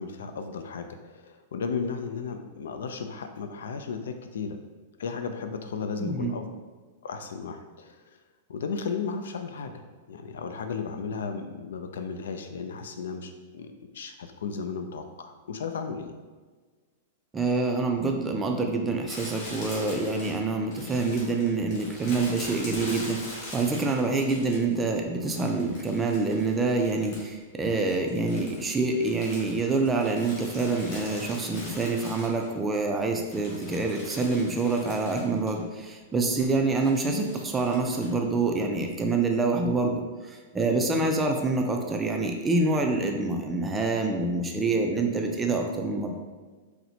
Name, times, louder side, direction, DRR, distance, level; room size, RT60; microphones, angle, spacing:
voice 1, 0.0-4.6 5.0-6.5 7.0-8.2 8.5-9.8 10.1-16.1 41.0-41.2, left 5 dB, 90° left, 7 dB, 0.3 m, -35 dB
voice 2, 6.0-6.3 17.3-40.0 40.5-46.1, right 3 dB, 10° right, 2 dB, 0.3 m, -26 dB
Crumpling crinkling, 19.1-24.8 25.3-27.4 27.7-32.8 33.1-35.6 35.8-35.9 36.8-38.1, left 1 dB, 45° left, 1.2 m, -42 dB
4.1 x 2.1 x 2.8 m, 1.4 s
supercardioid pair, 155°, 0 cm